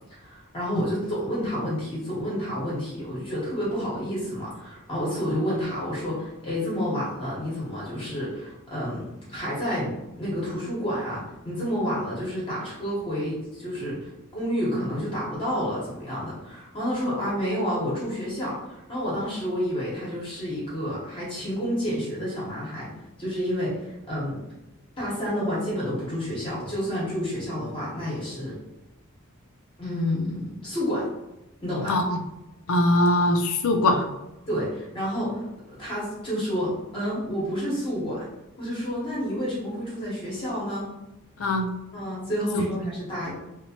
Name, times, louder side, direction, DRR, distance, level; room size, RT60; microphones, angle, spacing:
voice 1, 0.2-22.9 23.2-24.4 25.0-28.6 29.8-31.1 31.6-32.0 34.5-35.4 35.8-38.2 38.6-40.9 41.9-43.3, equal, 25° left, -7 dB, 0.9 m, -29 dB
voice 2, 31.9-32.2 32.7-34.0 41.4-41.7 42.5-42.6, left 1 dB, 65° left, 5 dB, 0.4 m, -21 dB
2.9 x 2.1 x 2.7 m, 0.98 s
head